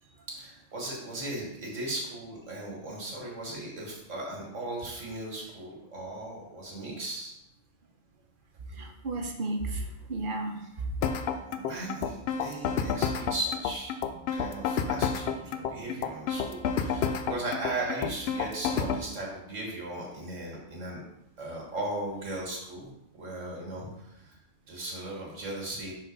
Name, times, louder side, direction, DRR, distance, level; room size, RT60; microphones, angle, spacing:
voice 1, 0.0-7.3 11.5-13.9 14.3-21.0 21.4-24.4 24.7-25.9, right 1 dB, 85° right, -2 dB, 2.0 m, -37 dB
voice 2, 8.8-10.9 15.2-15.3, right 2 dB, 50° right, 3 dB, 1.0 m, -34 dB
sound 1, 11.0-19.0, left 6 dB, 65° left, 0.7 m, -30 dB
5.8 x 3.8 x 5.3 m, 0.83 s
omnidirectional pair, 1.3 m